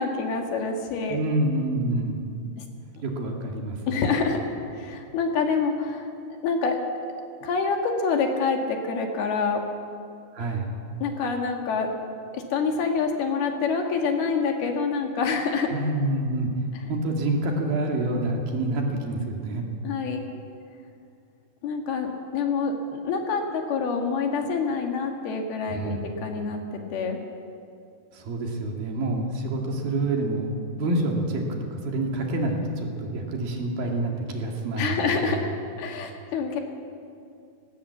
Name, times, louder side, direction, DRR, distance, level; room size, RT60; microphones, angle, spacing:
voice 1, 0.0-1.2 3.9-4.4 4.8-6.1 6.4-6.8 7.4-9.6 11.0-11.9 12.3-15.8 19.8-20.2 21.6-22.7 23.0-27.2 34.8-35.5 35.8-36.6, left 5 dB, 65° left, 3 dB, 3.4 m, -26 dB
voice 2, 1.1-2.2 3.0-4.0 10.3-10.7 15.7-16.5 16.9-19.6 25.7-26.1 28.1-31.4 31.7-35.4, right 2 dB, 60° right, 1 dB, 3.6 m, -27 dB
19.0 x 18.0 x 8.4 m, 2.4 s
omnidirectional pair, 5.0 m